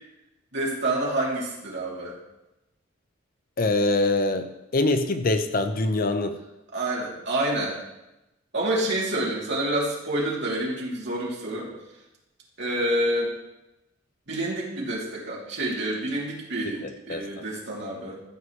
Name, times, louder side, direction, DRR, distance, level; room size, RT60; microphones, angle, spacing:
voice 1, 0.5-2.1 6.7-7.8 8.5-11.7 12.6-13.3 14.3-18.2, right 1 dB, 60° right, -5 dB, 3.0 m, -28 dB
voice 2, 3.6-6.4 16.8-17.2, left 2 dB, 45° left, 8 dB, 0.7 m, -24 dB
14.5 x 8.0 x 3.2 m, 0.94 s
head